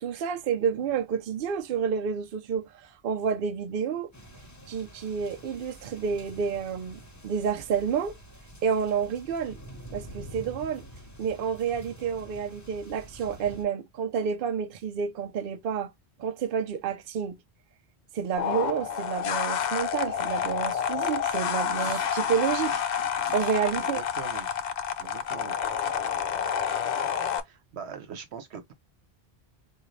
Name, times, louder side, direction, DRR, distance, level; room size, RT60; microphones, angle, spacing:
voice 1, 0.0-4.1 4.7-8.2 8.6-9.6 9.9-10.9 11.2-15.9 16.2-17.4 18.1-22.8 23.2-24.0 25.0-25.1, right 7 dB, 65° right, 0.7 m, -29 dB
sound 1, 4.1-13.6, right 1 dB, 15° left, 1.0 m, -47 dB
sound 2, 18.4-27.4, left 8 dB, 55° left, 0.5 m, -29 dB
voice 2, 23.8-24.6 25.0-25.6 27.4-28.7, right 7 dB, 85° right, 1.1 m, -42 dB
3.8 x 2.4 x 3.0 m
omnidirectional pair, 1.1 m